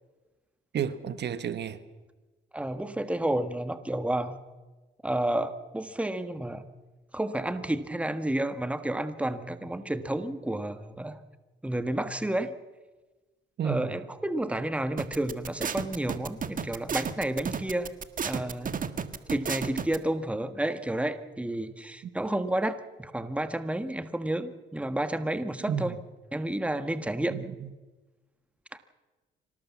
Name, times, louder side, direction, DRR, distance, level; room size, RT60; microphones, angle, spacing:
voice 1, 0.7-1.8 13.6-13.9 25.7-26.0 27.3-27.7, right 8 dB, 60° right, 1.3 m, -31 dB
voice 2, 2.5-4.4 5.0-6.6 7.1-11.2 11.6-12.5 13.6-17.9 18.2-18.8 19.3-25.9 26.3-27.4, right 1 dB, 5° right, 1.5 m, -30 dB
sound 1, 15.0-20.0, right 6 dB, 45° right, 1.6 m, -32 dB
25.0 x 18.5 x 7.3 m
cardioid pair, 90°, 20 cm